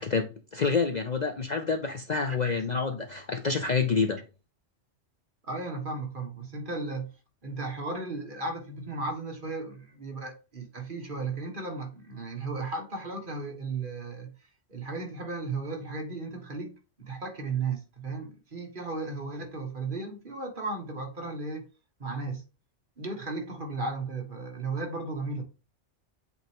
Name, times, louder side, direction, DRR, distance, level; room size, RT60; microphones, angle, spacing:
voice 1, 0.0-4.2, left 4 dB, 45° left, 0.7 m, -28 dB
voice 2, 5.5-7.1 7.4-14.3 14.7-16.7 17.0-21.7 22.0-22.4 23.0-25.4, right 3 dB, 45° right, 1.7 m, -35 dB
8.1 x 4.1 x 3.5 m
omnidirectional pair, 1.2 m